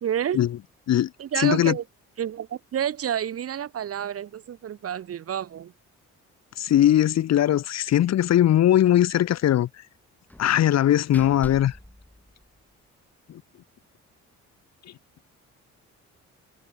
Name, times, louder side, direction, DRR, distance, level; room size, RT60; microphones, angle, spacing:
voice 1, 0.0-0.4 1.2-1.8 2.2-5.7, right 9 dB, 50° right, 0.9 m, -29 dB
voice 2, 1.4-1.8 6.6-9.7 10.4-11.8 13.3-13.4, left 12 dB, 60° left, 1.0 m, -20 dB
Slam, 7.4-7.7 8.0-8.1 8.4-8.5 10.3-12.9, left 1 dB, 5° left, 2.6 m, -45 dB
cardioid pair, 90°, 30 cm